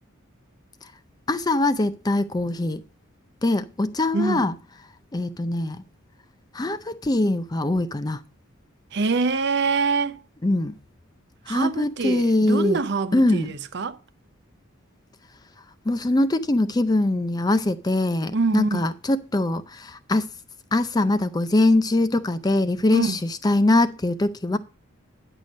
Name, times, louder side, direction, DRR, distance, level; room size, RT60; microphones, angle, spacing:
voice 1, 1.3-2.8 3.4-4.6 5.1-5.8 6.5-8.2 10.4-10.8 11.5-12.8 13.1-13.5 15.9-20.3 20.7-24.6, left 2 dB, 20° left, 0.4 m, -22 dB
voice 2, 4.1-4.4 8.9-10.2 11.5-14.0 18.3-18.9 22.9-23.2, right 4 dB, 55° right, 0.6 m, -24 dB
10.0 x 6.5 x 5.2 m
head